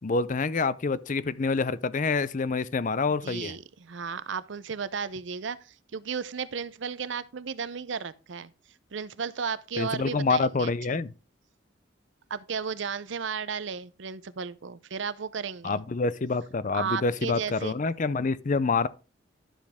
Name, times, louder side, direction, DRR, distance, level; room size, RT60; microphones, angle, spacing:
voice 1, 0.0-3.6 9.8-11.1 15.6-18.9, left 4 dB, 40° left, 0.5 m, -27 dB
voice 2, 3.1-8.5 8.9-10.7 12.3-15.8 16.7-17.7, right 6 dB, 65° right, 0.6 m, -34 dB
11.5 x 7.2 x 3.5 m
head